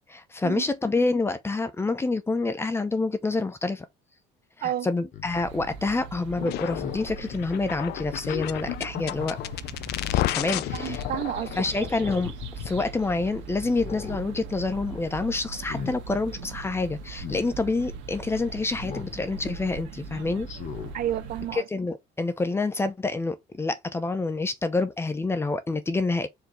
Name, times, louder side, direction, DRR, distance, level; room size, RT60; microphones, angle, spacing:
voice 1, 0.1-3.9 4.6-9.4 10.3-11.0 11.6-12.3 12.6-20.5 21.5-26.3, left 3 dB, 15° left, 0.6 m, -27 dB
Speech synthesizer, 5.1-5.3 6.8-7.0 8.3-8.8 10.1-10.6 11.9-12.4 12.8-12.9 13.7-14.2 14.6-14.9 15.5-16.0 17.2-17.5 18.8-19.2 19.6-19.7 20.4-20.9 21.4-21.5, left 6 dB, 40° left, 1.1 m, -38 dB
sound 1, 5.2-21.6, right 4 dB, 80° right, 1.4 m, -40 dB
sound 2, 6.4-12.8, left 15 dB, 60° left, 0.4 m, -32 dB
voice 2, 10.7-11.9 20.9-21.6, right 12 dB, 50° right, 0.5 m, -31 dB
4.6 x 2.9 x 3.8 m
cardioid pair, 145°, 19 cm